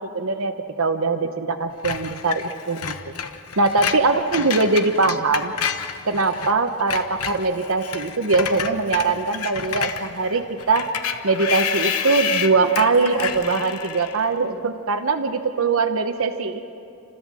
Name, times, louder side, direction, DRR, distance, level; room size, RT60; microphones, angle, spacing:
voice 1, 0.0-2.9 3.6-5.5 6.1-10.9 11.2-16.6, right 3 dB, 65° right, 6 dB, 0.9 m, -22 dB
Screech, 1.8-6.5 6.8-14.3, left 7 dB, 85° left, 1.1 m, -29 dB
30.0 x 13.5 x 7.5 m, 2.6 s
head